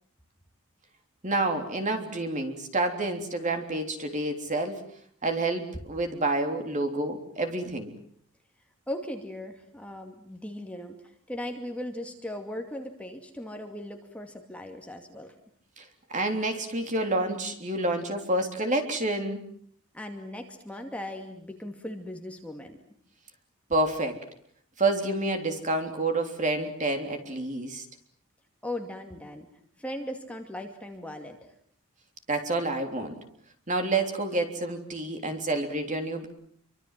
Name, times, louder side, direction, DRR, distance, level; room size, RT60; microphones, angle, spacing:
voice 1, 1.2-4.8 5.2-7.9 16.1-19.4 23.7-24.2 24.8-27.9 32.3-33.2 33.7-36.3, right 2 dB, 35° right, 5 dB, 3.5 m, -28 dB
voice 2, 8.9-11.0 11.3-15.3 19.9-22.8 28.6-29.5 29.8-31.4, left 1 dB, 5° left, 3 dB, 2.4 m, -38 dB
27.0 x 25.0 x 7.5 m, 0.62 s
head